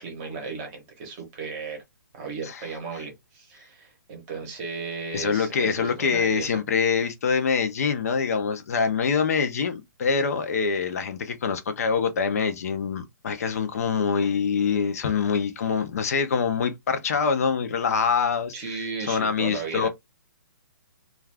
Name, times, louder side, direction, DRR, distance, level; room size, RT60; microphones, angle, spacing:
voice 1, 0.0-1.8 2.1-6.5 18.5-19.9, right 5 dB, 20° right, 0.9 m, -35 dB
voice 2, 5.1-19.9, left 6 dB, 45° left, 0.5 m, -25 dB
2.4 x 2.3 x 3.2 m
hypercardioid pair, 165°, 11 cm